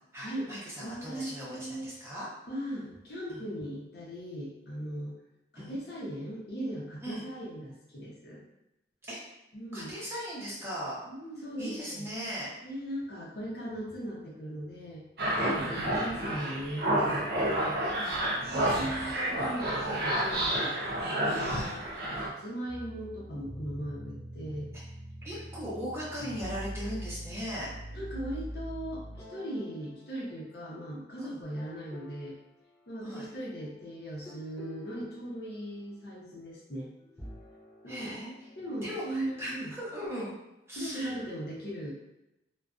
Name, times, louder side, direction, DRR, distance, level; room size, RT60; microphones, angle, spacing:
voice 1, 0.1-2.3 3.3-3.4 5.6-5.7 7.0-7.2 9.0-9.2 9.7-11.0 11.6-12.5 15.4-15.6 18.0-18.2 21.4-21.7 25.2-27.7 31.2-31.4 33.0-33.3 37.9-38.3 38.8-40.3 40.7-41.1, equal, 15° right, -7 dB, 0.7 m, -38 dB
voice 2, 0.8-1.9 2.5-5.1 5.5-8.4 9.5-10.0 11.1-12.1 12.6-15.1 15.4-17.8 18.2-21.8 22.1-24.7 27.9-32.3 32.9-36.9 37.8-38.2 38.6-39.7 40.8-41.9, equal, 60° left, -5 dB, 0.7 m, -39 dB
sound 1, 15.2-22.3, right 1 dB, 60° right, 0.5 m, -30 dB
sound 2, 22.7-31.0 31.5-32.4 34.3-36.0 37.1-39.7, equal, 15° left, 0.4 m, -45 dB
2.4 x 2.2 x 2.4 m, 0.92 s
head